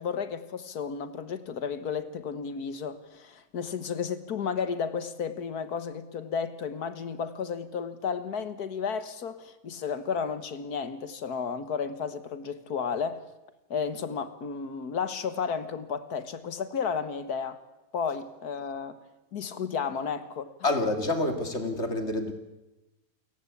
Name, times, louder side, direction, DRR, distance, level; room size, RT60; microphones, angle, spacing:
voice 1, 0.0-13.2 13.7-17.6 17.9-19.0 19.3-20.5, left 6 dB, 70° left, 1.9 m, -33 dB
voice 2, 20.6-22.3, left 2 dB, 45° left, 2.8 m, -27 dB
29.0 x 16.5 x 8.5 m
omnidirectional pair, 1.7 m